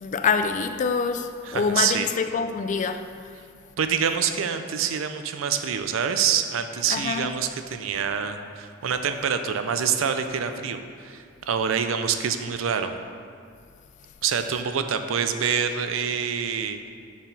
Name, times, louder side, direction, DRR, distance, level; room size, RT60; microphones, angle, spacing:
voice 1, 0.0-3.1 6.9-7.3, left 5 dB, 40° left, 0.3 m, -25 dB
voice 2, 1.4-2.1 3.8-13.0 14.2-16.9, right 7 dB, 80° right, 0.4 m, -26 dB
6.3 x 5.8 x 4.0 m
head